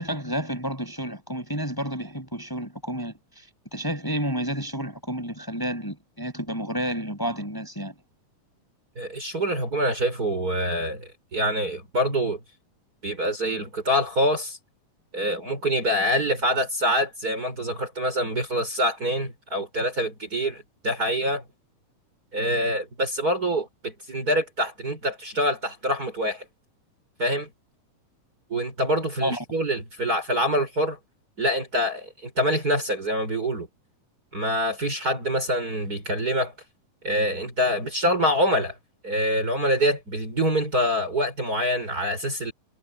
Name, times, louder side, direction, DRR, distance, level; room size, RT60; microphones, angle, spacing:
voice 1, 0.0-3.1 3.7-7.9 29.2-29.4, equal, 5° left, 6.2 m, -30 dB
voice 2, 9.0-12.4 13.0-14.6 15.1-21.4 22.3-26.4 27.2-27.5 28.5-31.0 31.4-33.7 34.3-36.5 37.0-38.7 39.0-42.5, equal, 25° right, 5.5 m, -25 dB
omnidirectional pair, 3.7 m